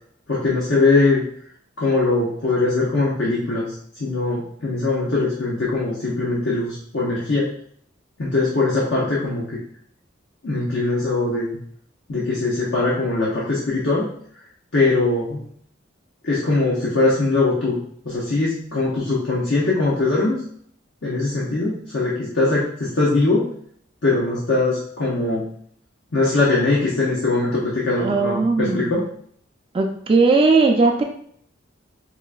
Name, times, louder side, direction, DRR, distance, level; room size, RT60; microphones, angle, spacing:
voice 1, 0.3-1.2 1.8-7.5 8.2-9.6 10.4-11.6 12.1-14.1 14.7-15.4 16.2-17.8 18.0-20.4 21.0-23.5 24.0-25.5 26.1-29.1, left 3 dB, 70° left, -6 dB, 0.7 m, -21 dB
voice 2, 28.0-29.0 29.7-31.0, right 3 dB, 30° right, 2 dB, 0.3 m, -18 dB
4.6 x 2.4 x 2.2 m, 0.63 s
head